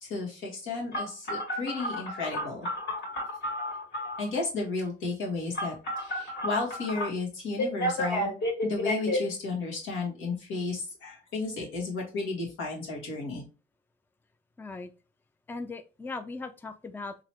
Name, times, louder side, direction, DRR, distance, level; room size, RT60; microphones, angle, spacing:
voice 1, 0.0-2.7 4.2-8.3 8.6-13.4, left 3 dB, 85° left, -2 dB, 1.8 m, -33 dB
Telephone, 0.9-4.3 5.5-7.1 7.6-9.2, left 1 dB, 60° left, 2.0 m, -31 dB
voice 2, 14.6-14.9 15.5-17.2, left 3 dB, 10° left, 10 dB, 0.4 m, -39 dB
3.9 x 2.7 x 3.0 m, 0.32 s
cardioid pair, 90°, 20 cm